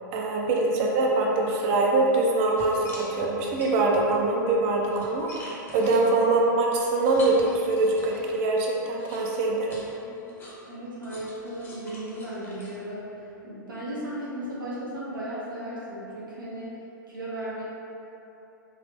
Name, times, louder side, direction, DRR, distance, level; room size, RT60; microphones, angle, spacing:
voice 1, 0.1-9.8, right 2 dB, 40° right, -1 dB, 0.5 m, -24 dB
sound 1, 2.1-2.2 2.5-4.0 4.6-8.4 9.0-13.4, left 1 dB, 20° left, 0.8 m, -45 dB
voice 2, 10.7-16.8 17.1-17.7, right 1 dB, 75° right, -8 dB, 0.8 m, -36 dB
3.6 x 2.8 x 3.3 m, 2.9 s
figure-of-eight pair, 100°, 11 cm